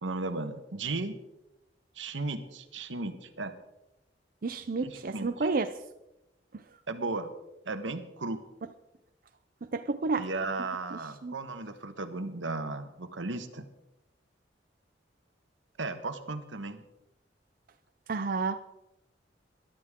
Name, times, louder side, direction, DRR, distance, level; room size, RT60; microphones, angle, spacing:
voice 1, 0.0-1.2 1.9-3.6 4.8-5.5 6.9-7.3 7.6-8.4 10.2-13.6 15.8-16.8, right 3 dB, 85° right, 9 dB, 1.3 m, -35 dB
voice 2, 4.4-5.7 9.7-10.3 11.2-11.3 18.1-18.6, right 3 dB, 50° right, 8 dB, 0.6 m, -30 dB
21.0 x 11.5 x 3.7 m, 0.91 s
head